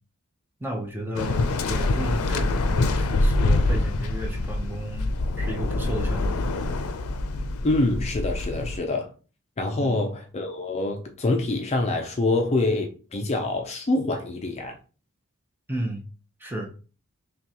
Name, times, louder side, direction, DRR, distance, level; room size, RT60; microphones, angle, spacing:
voice 1, 0.6-6.5 8.5-8.7 9.7-10.1 15.7-16.0 16.4-16.7, right 1 dB, 10° right, 0.7 m, -33 dB
Waves surf, 1.2-8.8, left 2 dB, 85° left, 0.5 m, -25 dB
voice 2, 7.6-9.1 9.6-14.8, left 2 dB, 30° left, 0.4 m, -25 dB
5.7 x 2.3 x 2.9 m
head